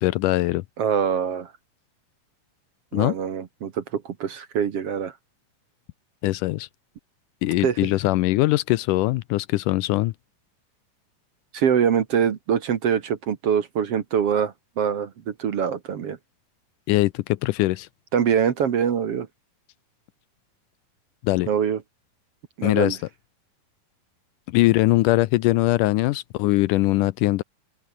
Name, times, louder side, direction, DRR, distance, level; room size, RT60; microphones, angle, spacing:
voice 1, 0.0-0.6 2.9-3.2 6.2-6.7 7.4-10.1 16.9-17.9 21.2-21.5 22.6-23.0 24.5-27.4, left 18 dB, 80° left, 2.1 m, -21 dB
voice 2, 0.8-1.5 2.9-5.1 7.6-7.9 11.5-16.2 18.1-19.3 21.5-21.8 22.6-23.0, right 7 dB, 55° right, 2.1 m, -24 dB
open air
omnidirectional pair, 3.9 m